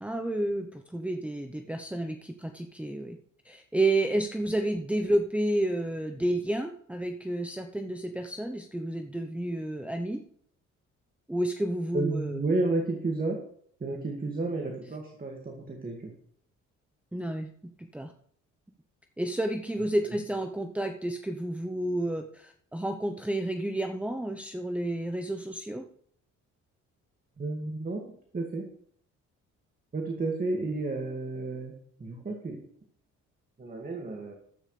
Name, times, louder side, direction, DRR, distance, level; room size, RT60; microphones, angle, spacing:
voice 1, 0.0-3.2 3.4-10.2 11.3-12.4 17.1-18.1 19.2-25.8, right 1 dB, 5° right, 5 dB, 0.8 m, -30 dB
voice 2, 11.9-13.4 13.8-16.1 27.4-28.0 28.3-28.6 29.9-32.6 33.6-34.3, right 2 dB, 30° right, 2 dB, 2.1 m, -31 dB
13.5 x 8.9 x 3.3 m, 0.63 s
cardioid pair, 90°, 30 cm